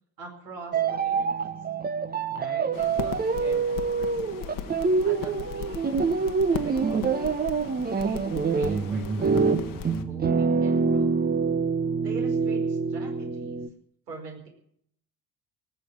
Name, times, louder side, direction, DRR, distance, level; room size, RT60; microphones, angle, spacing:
voice 1, 0.2-1.5 2.3-4.8 5.0-6.2 6.5-7.4 7.9-8.2 8.5-11.2 12.0-13.6 14.1-14.5, right 3 dB, 75° right, 1 dB, 5.0 m, -44 dB
sound 1, 0.7-13.7, right 5 dB, 20° right, 1.0 m, -26 dB
sound 2, 2.7-10.0, left 9 dB, 45° left, 1.5 m, -38 dB
18.5 x 7.9 x 9.6 m, 0.67 s
figure-of-eight pair, 60°, 48 cm